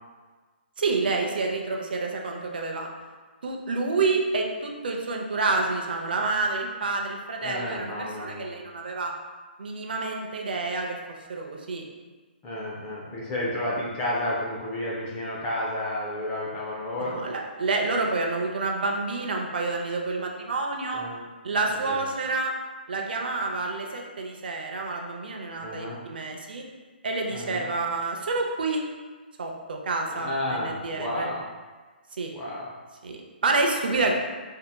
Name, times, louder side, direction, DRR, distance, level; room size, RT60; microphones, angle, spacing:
voice 1, 0.8-2.9 3.4-9.1 9.6-11.0 11.3-11.9 17.0-21.0 21.4-22.5 22.9-26.6 27.0-28.8 29.4-31.3 32.2-32.3 33.0-34.1, right 3 dB, 60° right, 1 dB, 0.5 m, -28 dB
voice 2, 7.4-8.5 12.4-17.2 20.9-21.2 21.9-22.1 25.6-26.0 27.3-27.7 30.1-31.4 32.3-32.7 34.0-34.1, left 1 dB, 10° left, -6 dB, 0.3 m, -31 dB
4.5 x 2.7 x 2.2 m, 1.4 s
hypercardioid pair, 175°, 6 cm